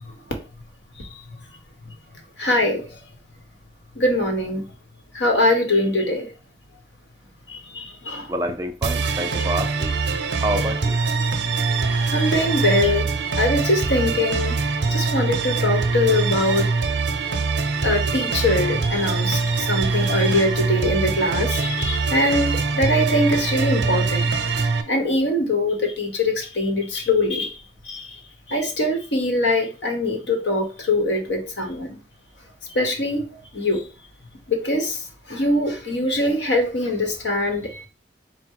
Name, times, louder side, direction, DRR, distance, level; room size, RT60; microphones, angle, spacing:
voice 1, 2.4-3.0 3.9-4.7 5.1-6.3 7.5-8.3 11.7-14.6 14.9-16.7 17.8-24.3 24.9-28.2 28.5-32.0 32.7-33.3 33.5-33.8 34.5-37.9, left 1 dB, 80° left, 4 dB, 1.1 m, -23 dB
voice 2, 8.3-9.9 10.4-11.0, right 1 dB, 20° right, 6 dB, 0.4 m, -27 dB
sound 1, 8.8-24.8, right 4 dB, 75° right, 0.6 m, -23 dB
4.3 x 2.1 x 4.6 m, 0.33 s
head